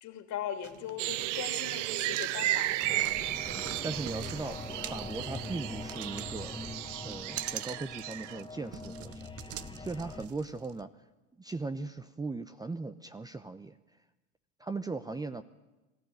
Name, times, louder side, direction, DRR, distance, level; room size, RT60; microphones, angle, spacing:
voice 1, 0.0-3.1, left 9 dB, 50° left, 7 dB, 2.9 m, -40 dB
sound 1, 0.6-10.8, right 12 dB, 40° right, 0.9 m, -46 dB
sound 2, 1.0-8.4, right 16 dB, 70° right, 0.7 m, -34 dB
sound 3, 2.8-10.3, left 3 dB, 10° left, 1.5 m, -43 dB
voice 2, 3.8-4.6 4.9-6.5 7.0-9.3 9.8-10.9 11.4-13.8 14.6-15.4, right 3 dB, 10° right, 10 dB, 0.8 m, -38 dB
22.0 x 15.0 x 9.4 m, 1.1 s
hypercardioid pair, 80°, 38 cm